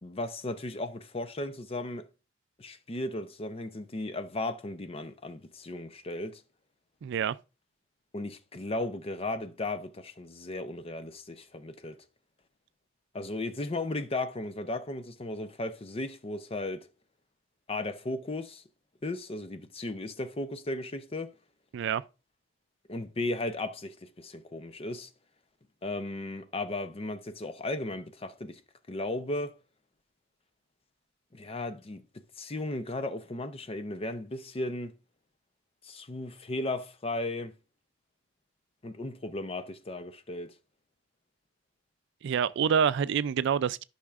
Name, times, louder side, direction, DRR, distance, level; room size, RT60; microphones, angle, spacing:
voice 1, 0.0-2.1 2.6-6.4 8.1-12.0 13.1-16.9 17.7-18.6 19.0-21.3 22.9-25.1 25.8-28.6 28.9-29.5 31.3-32.0 32.4-34.9 35.8-37.5 38.8-40.6, left 2 dB, 30° left, 0.6 m, -35 dB
voice 2, 7.0-7.4 21.7-22.0 42.2-43.8, right 7 dB, 65° right, 0.3 m, -27 dB
12.0 x 5.7 x 2.4 m
head